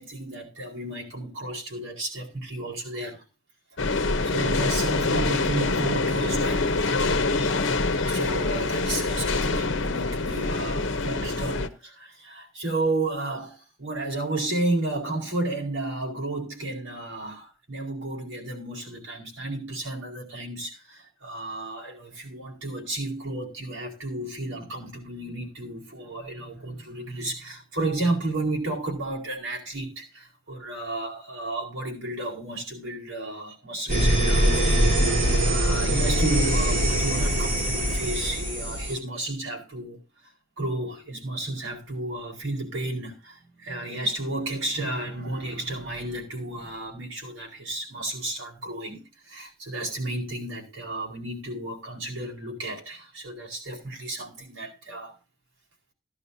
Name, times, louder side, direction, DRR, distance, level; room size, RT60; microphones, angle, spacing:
voice 1, 0.0-3.2 3.8-6.8 8.0-40.0 40.6-55.1, right 2 dB, 75° right, 4.6 m, -32 dB
sound 1, 3.8-11.7, left 3 dB, 60° left, 0.9 m, -25 dB
sound 2, 33.9-38.9, right 1 dB, 35° right, 7.2 m, -22 dB
15.5 x 11.0 x 2.8 m
head